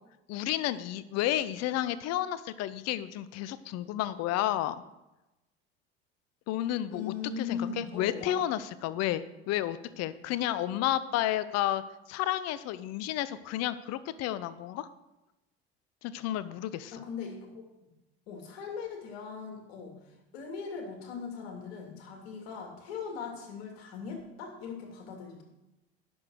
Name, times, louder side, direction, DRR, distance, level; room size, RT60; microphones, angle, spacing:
voice 1, 0.3-4.7 6.5-11.8 12.1-14.9 16.0-17.0, left 13 dB, 55° left, 15 dB, 0.7 m, -31 dB
voice 2, 6.9-8.4 16.9-17.6 18.3-25.4, left 6 dB, 70° left, 2 dB, 2.7 m, -39 dB
10.5 x 7.0 x 6.4 m, 0.97 s
hypercardioid pair, 70°, 31 cm